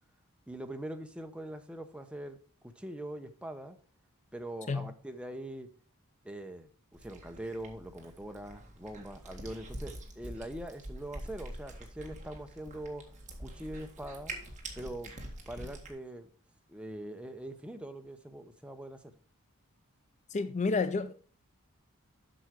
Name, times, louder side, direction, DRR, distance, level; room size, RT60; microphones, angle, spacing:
voice 1, 0.5-2.4 2.6-3.8 4.3-5.7 6.2-13.1 13.4-14.3 14.8-16.3 16.7-19.0, right 1 dB, 5° right, 0.8 m, -43 dB
Cat, 6.9-15.9, right 1 dB, 35° right, 1.8 m, -45 dB
voice 2, 20.3-21.1, left 4 dB, 35° left, 0.4 m, -30 dB
7.9 x 6.3 x 4.7 m
head